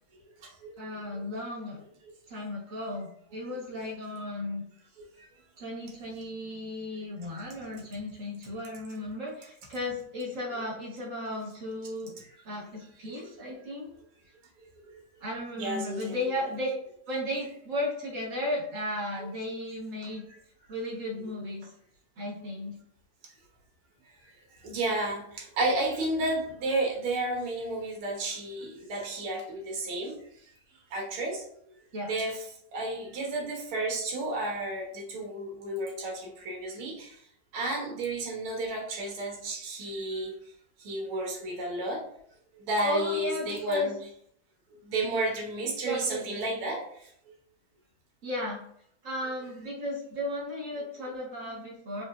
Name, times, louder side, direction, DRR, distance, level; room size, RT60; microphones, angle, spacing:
voice 1, 0.8-1.8 2.3-4.6 5.6-12.1 12.4-13.9 15.2-16.8 17.1-20.2 20.7-21.7 22.2-22.7 31.9-32.1 42.8-43.9 45.8-46.3 48.2-48.6 49.0-52.0, left 1 dB, 40° right, -4 dB, 1.6 m, -34 dB
voice 2, 15.6-16.5 24.6-30.2 30.9-31.5 32.0-32.4 32.7-37.2 37.5-40.3 40.8-42.0 42.6-44.0 44.8-46.8, right 2 dB, 80° right, 0 dB, 1.9 m, -32 dB
4.9 x 3.4 x 2.5 m, 0.67 s
omnidirectional pair, 2.3 m